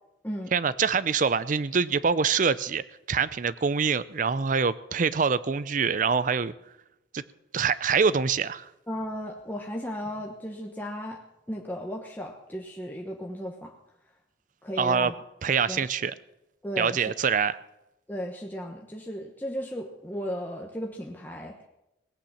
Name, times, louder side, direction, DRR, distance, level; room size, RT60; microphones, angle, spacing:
voice 1, 0.5-6.5 7.1-7.2 7.5-8.7 14.8-15.1 15.4-16.1 16.8-17.6, right 6 dB, 45° right, 16 dB, 0.5 m, -25 dB
voice 2, 8.9-11.2 11.5-13.7 14.6-15.1 15.7-15.8 16.6-17.0 18.1-21.7, equal, 10° left, 1 dB, 1.0 m, -35 dB
18.0 x 9.0 x 7.2 m, 0.89 s
head